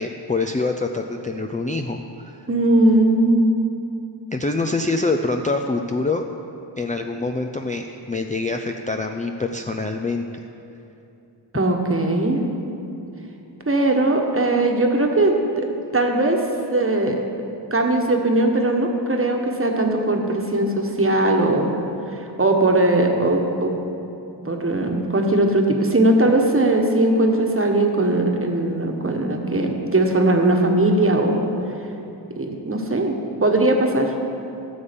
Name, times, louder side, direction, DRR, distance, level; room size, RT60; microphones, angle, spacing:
voice 1, 0.0-2.3 4.3-6.3 6.8-10.2, left 3 dB, 20° left, 3 dB, 0.4 m, -25 dB
voice 2, 2.5-3.6 11.5-12.4 13.6-15.7 15.9-16.4 16.7-17.2 17.7-21.7 22.2-23.7 24.4-31.5 32.3-34.1, right 2 dB, 30° right, 2 dB, 1.3 m, -19 dB
12.5 x 7.1 x 5.2 m, 2.8 s
wide cardioid pair, 70°, 45 cm